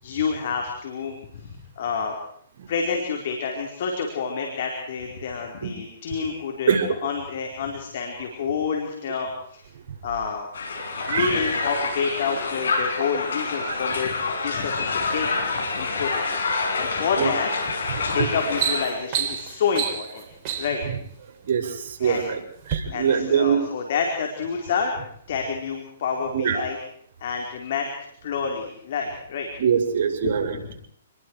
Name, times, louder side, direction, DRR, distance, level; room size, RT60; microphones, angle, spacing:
voice 1, 0.0-2.1 2.7-9.6 10.0-10.5 11.1-14.2 14.4-15.5 15.7-16.4 16.7-20.2 20.6-20.8 22.0-22.3 22.9-24.9 25.3-26.8 27.2-27.9 28.2-29.5 30.2-30.7, left 6 dB, 60° left, 1 dB, 4.7 m, -28 dB
Crowd, 10.5-18.9, left 4 dB, 80° left, 6.6 m, -27 dB
voice 2, 11.0-11.3 13.6-13.7 17.2-17.3 18.2-18.3 21.5-22.4 22.7-23.5 26.3-26.6 29.6-30.5, right 7 dB, 55° right, 1 dB, 6.5 m, -23 dB
sound 1, 17.6-17.9 18.3-20.9 21.7-22.2 22.6-22.8, right 9 dB, 35° right, 4.0 m, -29 dB
28.5 x 21.5 x 4.9 m, 0.66 s
hypercardioid pair, 140°, 0 cm